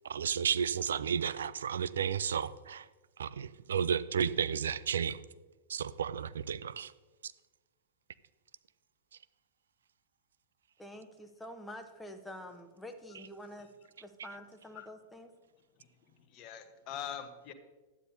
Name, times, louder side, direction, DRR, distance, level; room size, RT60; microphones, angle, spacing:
voice 1, 0.1-2.8 3.2-5.2 5.7-6.9, right 7 dB, 65° right, 16 dB, 0.3 m, -32 dB
voice 2, 10.8-13.7 14.0-15.3, equal, 5° left, 6 dB, 0.8 m, -47 dB
voice 3, 15.7-17.5, left 9 dB, 40° left, 8 dB, 1.0 m, -44 dB
11.5 x 9.7 x 2.7 m, 1.2 s
figure-of-eight pair, 95°, 0 cm